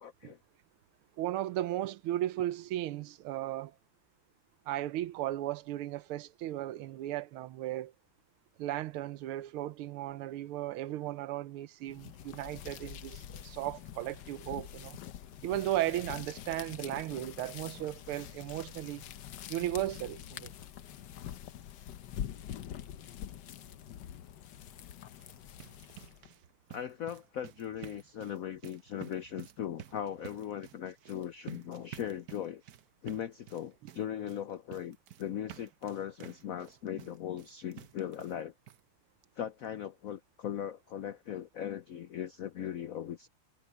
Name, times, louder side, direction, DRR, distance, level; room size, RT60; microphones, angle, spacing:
voice 1, 0.0-0.4 26.7-32.6 33.0-38.5 39.4-43.3, left 10 dB, 80° left, 0.7 m, -39 dB
voice 2, 1.2-3.8 4.7-7.9 8.6-15.0 15.4-19.0 19.5-20.5, right 14 dB, 85° right, 1.6 m, -36 dB
sound 1, 11.9-26.3, left 10 dB, 65° left, 1.3 m, -45 dB
sound 2, 25.1-38.4 38.7-38.8 39.2-39.3 39.6-39.7, right 12 dB, 60° right, 1.1 m, -51 dB
omnidirectional pair, 2.3 m